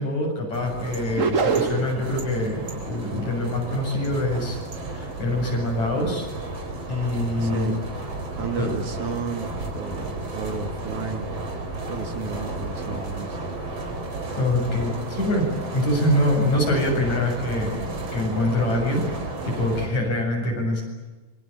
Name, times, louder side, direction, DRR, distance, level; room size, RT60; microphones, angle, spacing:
voice 1, 0.0-4.6 4.9-6.3 6.9-7.7 8.6-8.7 14.4-17.8 18.1-19.0 19.4-20.8, left 1 dB, 55° left, 1 dB, 8.8 m, -24 dB
sound 1, 0.5-19.9, right 2 dB, 45° right, 5.4 m, -33 dB
sound 2, 1.1-2.1, right 5 dB, 85° right, 0.7 m, -23 dB
voice 2, 7.4-7.8 8.4-9.5 9.7-11.3 11.8-13.4, right 4 dB, 60° right, 6 dB, 4.0 m, -32 dB
26.5 x 24.5 x 8.9 m, 1.2 s
omnidirectional pair, 3.9 m